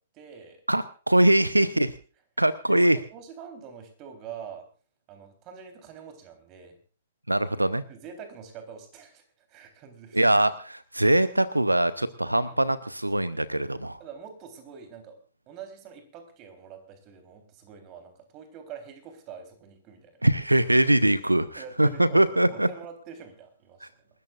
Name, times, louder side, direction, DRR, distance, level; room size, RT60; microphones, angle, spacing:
voice 1, 0.1-0.6 1.6-1.9 2.7-4.7 5.1-6.8 7.9-9.2 9.5-10.2 12.4-12.6 14.0-15.2 15.5-20.2 21.6-23.9, right 7 dB, 30° right, 6 dB, 3.8 m, -45 dB
voice 2, 0.7-1.9 2.4-3.0 7.3-7.8 10.1-14.0 20.2-22.7, right 1 dB, 85° right, 16 dB, 0.8 m, -22 dB
28.0 x 13.5 x 2.5 m, 0.38 s
figure-of-eight pair, 115°, 0 cm